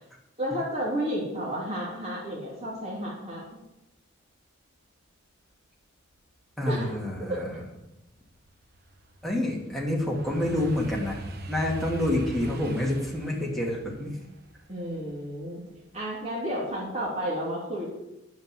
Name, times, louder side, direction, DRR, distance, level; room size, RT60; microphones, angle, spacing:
voice 1, 0.4-3.4 6.7-7.0 7.3-7.4 14.7-15.6 15.9-17.9, equal, 30° right, -5 dB, 3.0 m, -31 dB
voice 2, 6.6-7.5 9.2-14.2, left 1 dB, ahead, -3 dB, 2.3 m, -28 dB
sound 1, 7.7-16.3 16.7-17.1, right 1 dB, 50° right, 1.1 m, -42 dB
9.5 x 8.0 x 7.6 m, 0.95 s
head